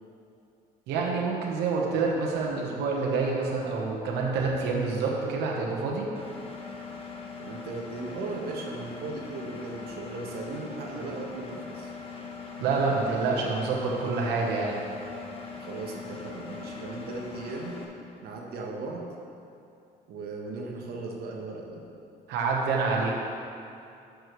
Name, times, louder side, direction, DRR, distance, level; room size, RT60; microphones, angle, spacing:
voice 1, 0.9-6.1 12.6-14.8 22.3-23.2, right 4 dB, 85° right, -2 dB, 1.2 m, -27 dB
Engine, 6.1-17.8, left 5 dB, 35° left, 1.2 m, -41 dB
voice 2, 7.4-11.9 15.6-17.8 18.2-19.1 20.1-21.8, right 3 dB, 65° right, 0 dB, 1.3 m, -37 dB
12.0 x 6.4 x 3.2 m, 2.6 s
cardioid pair, 110°, 17 cm